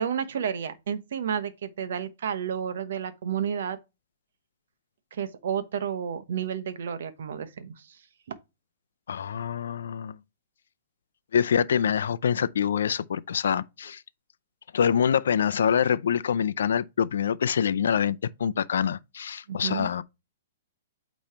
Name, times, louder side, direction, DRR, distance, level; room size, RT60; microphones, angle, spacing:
voice 1, 0.0-3.8 5.1-8.0 8.3-8.4 19.5-19.9, right 8 dB, 60° right, 1.0 m, -31 dB
voice 2, 9.1-10.2 11.3-14.0 14.7-20.0, left 8 dB, 80° left, 0.5 m, -25 dB
8.6 x 3.1 x 4.3 m
hypercardioid pair, 170°, 0 cm